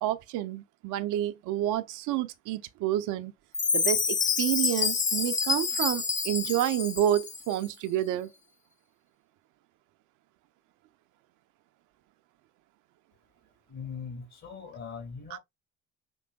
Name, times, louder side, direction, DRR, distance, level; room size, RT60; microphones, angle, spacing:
voice 1, 0.0-3.3 3.7-8.3 15.3-15.4, right 12 dB, 60° right, 0.6 m, -29 dB
Chime, 3.5-7.5, left 5 dB, 20° left, 0.6 m, -28 dB
voice 2, 13.7-15.4, left 6 dB, 55° left, 2.0 m, -40 dB
5.3 x 3.3 x 2.3 m
hypercardioid pair, 45°, 34 cm